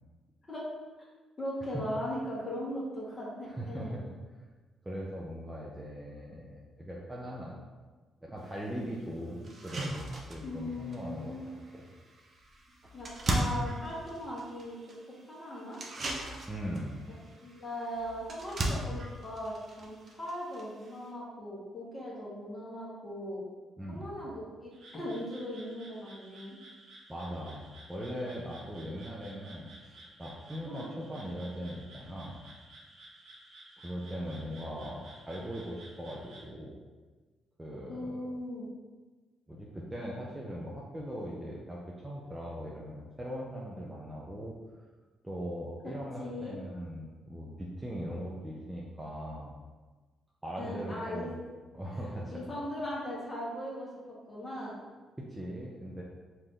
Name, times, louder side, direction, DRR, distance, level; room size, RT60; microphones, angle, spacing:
voice 1, 1.4-4.0 10.4-11.6 12.9-14.8 15.3-15.8 17.4-23.4 23.9-26.6 30.6-30.9 37.9-38.7 46.2-46.6 50.6-51.3 52.3-53.9 54.3-54.8, equal, 25° left, -7 dB, 1.5 m, -39 dB
voice 2, 3.4-4.1 4.8-7.6 8.2-11.4 11.7-11.9 12.8-12.9 16.5-17.0 23.8-24.2 27.1-27.6 27.9-32.4 33.8-36.8 37.6-38.3 39.5-44.5 45.2-49.5 50.4-51.3 51.7-52.4 55.2-56.0, equal, 10° right, -4 dB, 0.7 m, -40 dB
sound 1, 8.4-8.5 9.0-9.1 9.4-21.1, right 1 dB, 45° right, 0.8 m, -38 dB
Frog, 24.7-36.5, right 1 dB, 60° right, 1.3 m, -54 dB
4.9 x 2.8 x 3.8 m, 1.3 s
cardioid pair, 90°, 0 cm